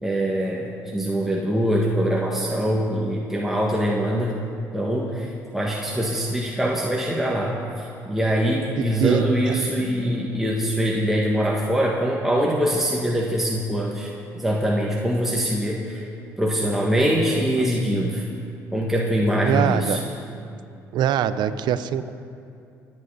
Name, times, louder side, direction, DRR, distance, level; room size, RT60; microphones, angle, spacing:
voice 1, 0.0-4.4 4.7-16.0 16.4-18.2 18.7-20.0, equal, 5° right, -3 dB, 1.8 m, -23 dB
voice 2, 8.8-9.2 19.4-20.0 20.9-22.1, right 9 dB, 70° right, 13 dB, 0.7 m, -22 dB
26.5 x 8.9 x 4.1 m, 2.5 s
hypercardioid pair, 60°, 8 cm